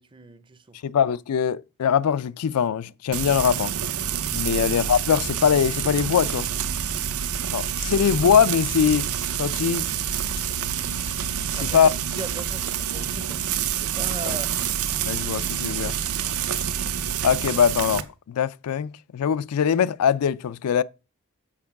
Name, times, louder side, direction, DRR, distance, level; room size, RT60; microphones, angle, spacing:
voice 1, 0.0-0.9 4.5-4.7 11.6-13.4 13.7-14.5, right 2 dB, 20° right, 0.5 m, -39 dB
voice 2, 0.8-3.7 4.3-6.5 7.5-9.1 9.4-9.9 11.6-11.9 15.0-15.9 17.2-20.8, left 7 dB, 90° left, 0.4 m, -22 dB
Frying (food), 3.1-18.0, right 9 dB, 80° right, 0.7 m, -27 dB
7.5 x 4.5 x 5.8 m
head